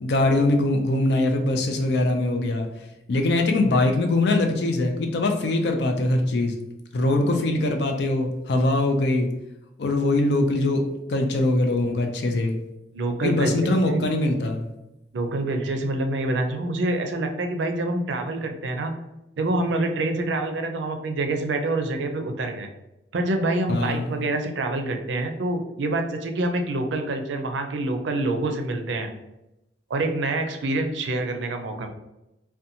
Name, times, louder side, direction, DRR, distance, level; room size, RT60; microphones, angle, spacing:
voice 1, 0.0-2.7 3.1-6.6 6.9-9.3 9.8-12.6 13.2-14.7 23.7-24.1, left 2 dB, 65° left, 4 dB, 0.4 m, -22 dB
voice 2, 12.9-13.5 13.8-14.0 15.1-18.9 19.4-22.7 23.1-29.1 29.9-31.9, right 2 dB, 80° right, 5 dB, 0.4 m, -26 dB
2.6 x 2.2 x 2.7 m, 0.91 s
head